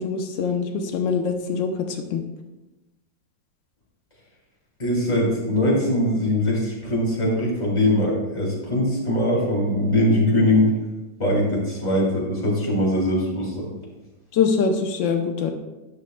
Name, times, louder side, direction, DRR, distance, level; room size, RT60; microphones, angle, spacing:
voice 1, 0.0-2.2 14.3-15.5, left 5 dB, 90° left, 5 dB, 1.5 m, -23 dB
voice 2, 4.8-10.7 11.2-13.5, left 1 dB, 20° left, -3 dB, 2.6 m, -21 dB
11.5 x 10.0 x 2.3 m, 1.0 s
omnidirectional pair, 2.0 m